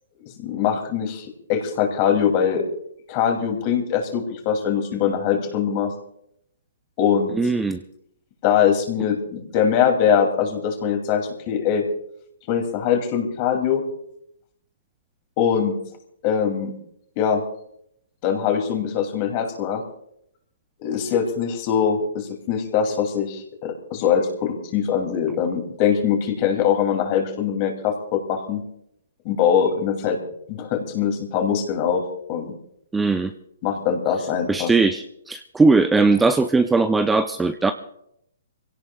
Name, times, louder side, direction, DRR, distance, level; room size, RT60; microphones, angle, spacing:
voice 1, 0.4-2.7 3.1-5.9 7.0-7.4 8.4-11.8 12.5-13.8 15.4-15.7 16.2-16.7 17.2-17.4 18.2-19.8 20.8-28.6 29.2-30.2 30.5-32.0 32.3-32.5 33.6-34.7, left 7 dB, 35° left, 3 dB, 2.8 m, -22 dB
voice 2, 7.4-7.8 32.9-33.3 34.5-37.7, right 3 dB, 10° right, 8 dB, 0.5 m, -19 dB
26.0 x 17.0 x 2.4 m, 0.74 s
hypercardioid pair, 135°, 0 cm